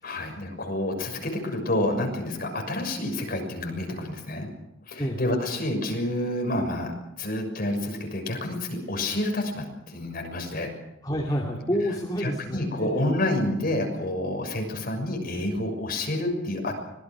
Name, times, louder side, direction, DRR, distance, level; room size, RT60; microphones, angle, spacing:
voice 1, 0.0-4.5 4.9-6.9 7.2-10.7 12.2-16.7, left 1 dB, 45° left, 2 dB, 6.5 m, -29 dB
voice 2, 11.0-13.1, equal, 20° left, -2 dB, 2.7 m, -29 dB
25.5 x 20.5 x 6.3 m, 0.90 s
head